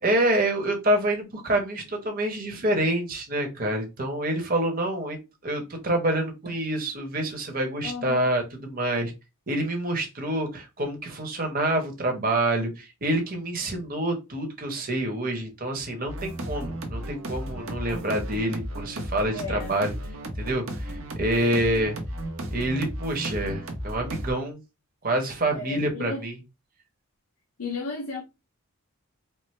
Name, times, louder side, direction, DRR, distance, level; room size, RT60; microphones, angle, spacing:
voice 1, 0.0-9.1 9.5-19.9 20.4-21.9 22.5-24.6 25.0-26.3, right 1 dB, 40° right, 1.0 m, -27 dB
voice 2, 7.8-8.4 19.3-19.8 25.5-26.2 27.6-28.2, left 4 dB, 80° left, 0.7 m, -34 dB
sound 1, 16.1-24.3, right 1 dB, 65° right, 0.9 m, -34 dB
4.5 x 2.0 x 3.2 m
head